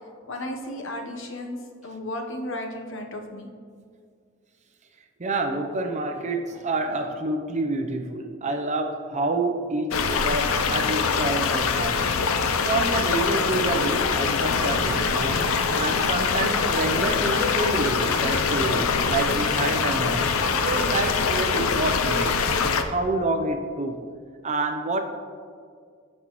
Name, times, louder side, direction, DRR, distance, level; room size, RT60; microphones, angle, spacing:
voice 1, 0.3-1.6 1.8-3.5, left 1 dB, 65° left, 3 dB, 1.0 m, -34 dB
voice 2, 5.2-12.3 12.6-15.4 15.8-22.4 22.9-24.0 24.4-25.0, right 2 dB, 35° right, 5 dB, 0.6 m, -28 dB
sound 1, 9.9-22.8, left 5 dB, 90° left, 0.5 m, -23 dB
14.5 x 5.4 x 3.0 m, 2.1 s
head